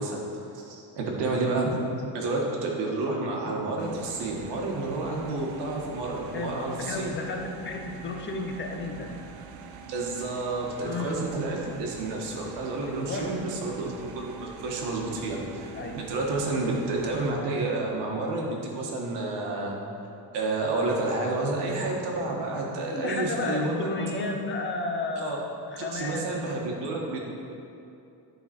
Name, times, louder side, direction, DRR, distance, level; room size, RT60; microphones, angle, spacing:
voice 1, 0.0-1.8 2.1-7.1 9.8-19.8 20.3-24.3 25.2-25.4 25.8-27.2, right 2 dB, 90° right, -1 dB, 1.5 m, -30 dB
sound 1, 3.8-17.3, right 6 dB, 70° right, 0.7 m, -45 dB
voice 2, 6.3-9.2 10.8-11.3 12.8-13.3 15.7-16.0 22.9-25.4 25.7-26.3, left 3 dB, 30° left, 2 dB, 0.5 m, -33 dB
11.5 x 4.0 x 4.3 m, 2.7 s
cardioid pair, 170°, 40 cm